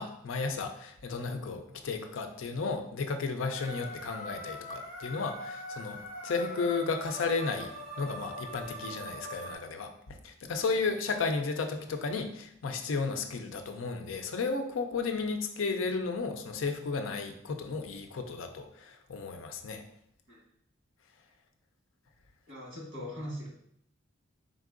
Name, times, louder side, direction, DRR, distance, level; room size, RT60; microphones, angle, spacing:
voice 1, 0.0-19.8, left 4 dB, 85° left, 6 dB, 0.5 m, -33 dB
sound 1, 3.5-9.5, equal, 40° left, 1.1 m, -42 dB
voice 2, 22.5-23.5, equal, 90° right, -3 dB, 1.4 m, -40 dB
3.9 x 3.6 x 2.5 m, 0.72 s
head